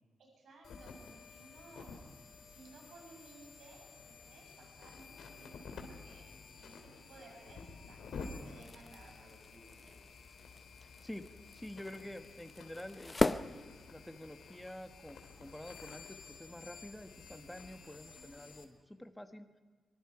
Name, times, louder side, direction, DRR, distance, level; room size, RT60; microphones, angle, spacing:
voice 1, 0.2-1.9 2.5-6.3 6.6-10.1 17.3-17.6 18.0-18.5, right 2 dB, 80° right, 0 dB, 7.1 m, -58 dB
sound 1, 0.6-18.7, left 4 dB, 85° left, 3.0 m, -52 dB
sound 2, 8.4-14.4, left 2 dB, 20° left, 0.7 m, -39 dB
voice 2, 10.8-11.2 11.5-19.5, left 1 dB, 5° left, 7 dB, 1.3 m, -48 dB
24.0 x 23.5 x 4.8 m, 1.5 s
cardioid pair, 115°, 0 cm